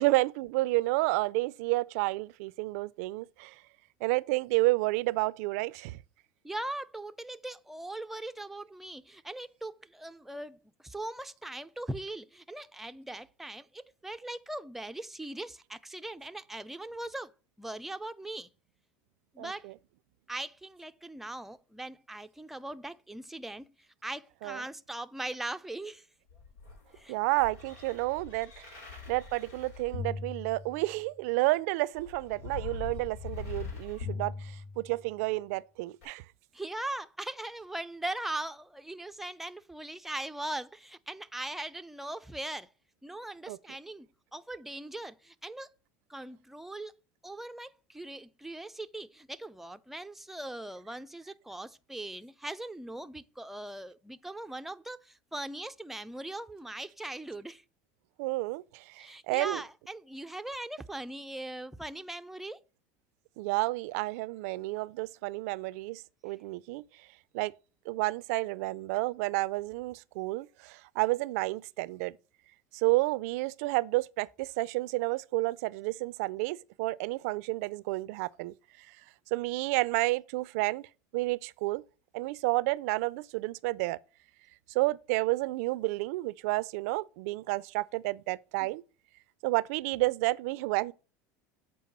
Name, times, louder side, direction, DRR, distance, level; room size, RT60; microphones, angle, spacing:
voice 1, 0.0-3.5 4.0-6.0 19.4-19.7 24.4-24.6 27.1-28.8 29.1-36.2 43.5-43.6 58.2-59.6 63.4-66.8 67.3-67.5 67.9-72.2 72.7-78.9 79.3-80.9 81.1-81.8 82.1-84.0 84.7-88.8 89.4-90.9, right 21 dB, 75° right, 0.5 m, -30 dB
voice 2, 6.4-17.3 17.6-18.5 19.3-19.7 20.3-26.1 27.0-27.1 36.5-42.7 43.0-45.7 46.1-46.9 47.2-57.6 59.0-62.6, right 1 dB, 5° right, 0.5 m, -40 dB
sound 1, 26.3-31.2 31.9-35.3 36.0-36.1, left 5 dB, 85° left, 4.1 m, -42 dB
7.6 x 4.6 x 5.3 m
supercardioid pair, 110°, 8 cm